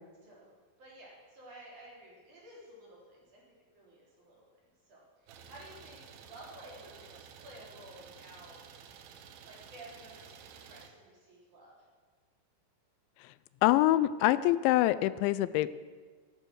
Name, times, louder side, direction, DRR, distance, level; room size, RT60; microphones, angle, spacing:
voice 1, 0.8-3.4 3.7-4.4 4.9-8.6 9.4-11.9, right 1 dB, 45° right, -5 dB, 4.8 m, -53 dB
Idling, 5.3-10.9, right 7 dB, 80° right, 3.3 m, -52 dB
voice 2, 13.6-15.7, left 15 dB, 85° left, 15 dB, 2.9 m, -25 dB
14.0 x 12.0 x 6.3 m, 1.5 s
omnidirectional pair, 5.2 m